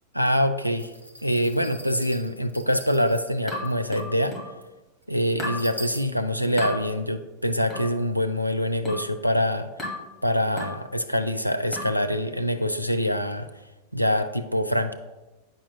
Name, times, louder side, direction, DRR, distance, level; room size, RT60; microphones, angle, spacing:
voice 1, 0.1-0.9 1.2-4.4 5.1-9.7 10.2-13.5 13.9-14.9, equal, 90° left, 8 dB, 0.4 m, -25 dB
sound 1, 0.8-3.4 3.6-3.7 4.0-4.1 4.6-4.7 5.0-5.1 5.6-6.0, equal, 90° right, 0.7 m, -42 dB
sound 2, 3.5-4.6 5.4-5.7 6.6-6.8 7.7-8.0 8.8-9.1 9.8-10.1 10.6-10.8 11.7-12.0, left 1 dB, 15° left, 1.7 m, -34 dB
8.8 x 5.9 x 2.3 m, 1.1 s
figure-of-eight pair, 90°, 0 cm